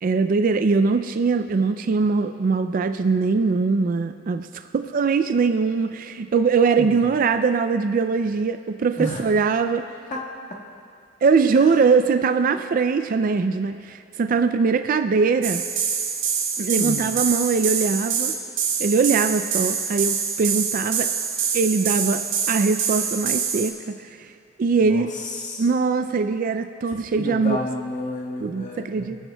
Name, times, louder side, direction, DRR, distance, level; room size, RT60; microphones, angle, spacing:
voice 1, 0.0-4.5 4.7-9.9 11.2-15.6 16.6-18.3 18.8-21.1 21.5-24.3 24.6-25.1 25.6-27.6 28.4-29.2, right 4 dB, 45° right, 8 dB, 0.3 m, -21 dB
voice 2, 6.8-7.1 8.9-9.2 10.1-10.2 11.5-11.7 16.8-17.2 24.8-25.7 27.2-29.2, left 1 dB, 40° left, -3 dB, 1.6 m, -31 dB
sound 1, 15.4-23.7, right 7 dB, 90° right, 1.3 m, -25 dB
23.5 x 10.0 x 2.2 m, 2.2 s
head